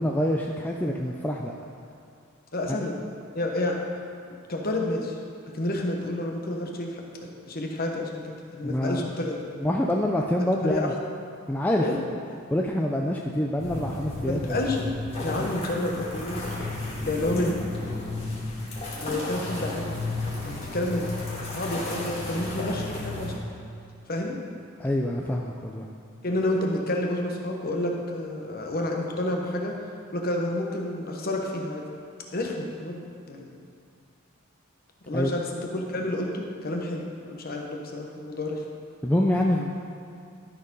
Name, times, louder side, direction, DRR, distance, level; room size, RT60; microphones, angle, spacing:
voice 1, 0.0-1.5 2.7-2.8 8.6-9.0 9.6-10.9 11.5-11.8 12.5-14.6 24.8-25.8 35.1-35.3 39.0-39.7, left 1 dB, 10° left, -1 dB, 0.3 m, -26 dB
voice 2, 2.5-3.0 3.3-3.8 4.5-5.2 5.5-9.4 10.6-10.9 11.8-12.0 14.3-14.9 15.2-16.5 17.0-17.6 18.9-20.0 20.4-21.1 21.5-23.4 24.1-24.4 26.2-29.7 30.1-31.9 32.3-33.5 35.1-38.6, left 1 dB, 45° left, 1 dB, 1.0 m, -29 dB
sound 1, 13.6-23.4, left 2 dB, 30° left, 1.7 m, -33 dB
12.5 x 4.5 x 5.3 m, 2.4 s
head